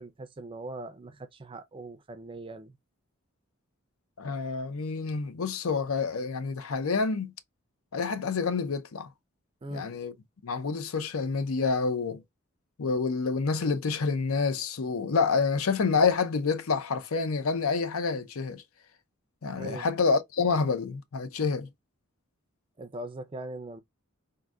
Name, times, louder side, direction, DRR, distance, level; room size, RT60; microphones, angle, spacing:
voice 1, 0.0-2.8 9.6-9.9 19.5-19.9 22.8-23.8, right 2 dB, 25° right, 0.4 m, -40 dB
voice 2, 4.2-7.3 7.9-9.1 9.7-10.1 10.4-12.2 12.8-18.6 19.4-21.7, left 4 dB, 80° left, 0.6 m, -28 dB
3.7 x 2.6 x 2.2 m
head